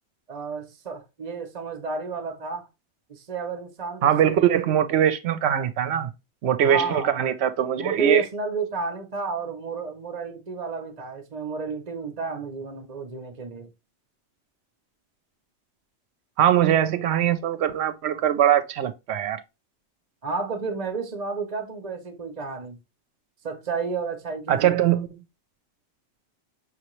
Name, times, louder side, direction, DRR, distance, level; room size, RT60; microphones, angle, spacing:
voice 1, 0.3-2.7 3.1-4.6 6.6-7.2 7.8-13.7 20.2-22.8 23.4-24.8, right 4 dB, 40° right, 0.8 m, -31 dB
voice 2, 4.0-6.1 6.4-8.2 16.4-19.4 24.5-25.1, right 10 dB, 70° right, 0.8 m, -22 dB
5.8 x 2.9 x 3.0 m
omnidirectional pair, 1.2 m